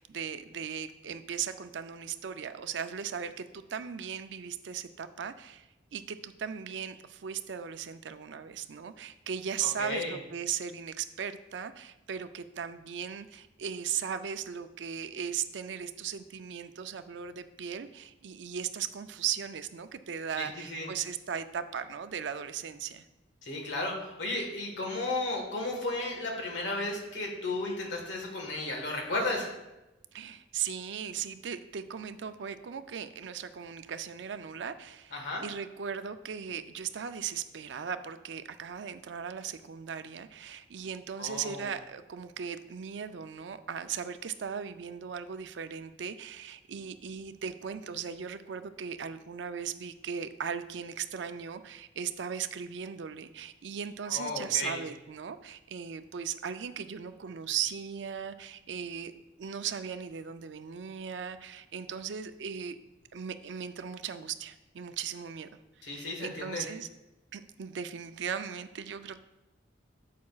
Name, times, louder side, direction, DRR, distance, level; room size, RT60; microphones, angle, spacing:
voice 1, 0.0-23.1 30.1-62.8 63.1-65.5 65.8-66.9 67.3-69.2, right 7 dB, 70° right, 10 dB, 0.4 m, -37 dB
voice 2, 9.6-10.2 20.4-20.9 23.4-29.5 35.1-35.4 41.2-41.7 54.1-54.8 65.8-66.6, left 2 dB, 75° left, 1 dB, 1.5 m, -34 dB
8.3 x 7.4 x 2.4 m, 0.96 s
head